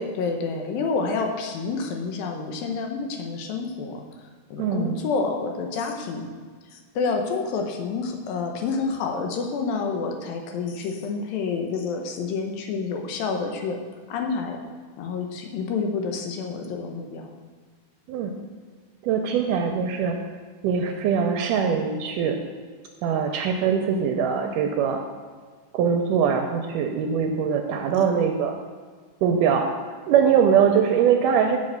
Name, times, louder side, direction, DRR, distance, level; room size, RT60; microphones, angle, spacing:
voice 1, 0.0-4.0 4.5-6.3 6.7-13.8 14.1-14.6 15.0-17.2, left 4 dB, 85° left, 4 dB, 2.7 m, -28 dB
voice 2, 4.6-5.0 18.1-18.3 19.0-20.2 20.6-22.4 23.0-25.0 25.7-28.5 29.2-31.6, right 7 dB, 80° right, 4 dB, 2.0 m, -22 dB
8.4 x 6.0 x 6.5 m, 1.5 s
omnidirectional pair, 4.1 m